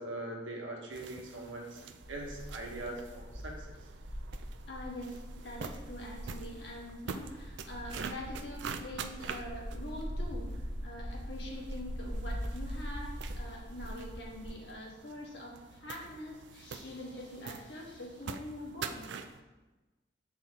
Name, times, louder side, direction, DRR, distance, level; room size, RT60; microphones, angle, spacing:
voice 1, 0.0-1.8 2.1-3.7, right 2 dB, 85° right, -1 dB, 1.2 m, -41 dB
sound 1, 0.9-19.4, right 6 dB, 65° right, 0.4 m, -46 dB
sound 2, 2.0-14.5, equal, 40° right, 1.4 m, -42 dB
voice 2, 4.7-19.1, left 1 dB, 65° left, -2 dB, 1.4 m, -44 dB
7.5 x 4.2 x 3.6 m, 1.1 s
head